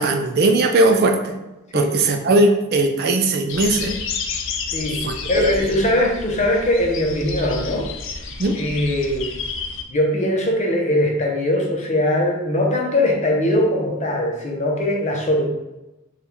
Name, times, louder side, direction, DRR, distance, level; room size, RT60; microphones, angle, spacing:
voice 1, 0.0-1.4 1.7-4.0 5.0-5.7 8.4-8.6, right 2 dB, 50° right, 5 dB, 0.4 m, -19 dB
sound 1, 3.5-9.8, left 4 dB, 65° left, 0.5 m, -30 dB
voice 2, 5.3-7.8 8.5-9.2 9.9-15.5, left 1 dB, 35° left, 0 dB, 0.8 m, -21 dB
4.3 x 2.4 x 3.4 m, 0.98 s
head